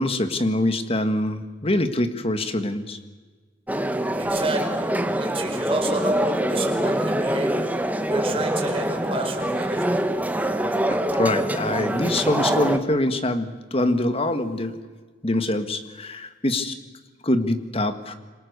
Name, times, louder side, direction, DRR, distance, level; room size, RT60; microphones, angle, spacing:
voice 1, 0.0-3.0 10.6-14.8 15.2-16.8 17.2-18.1, left 1 dB, 30° left, 9 dB, 1.8 m, -24 dB
sound 1, 3.7-12.8, right 1 dB, 10° right, 1.3 m, -24 dB
voice 2, 4.2-4.9 5.2-7.8 8.1-10.0, right 2 dB, 30° right, 3 dB, 4.7 m, -30 dB
27.5 x 25.0 x 6.8 m, 1.4 s
head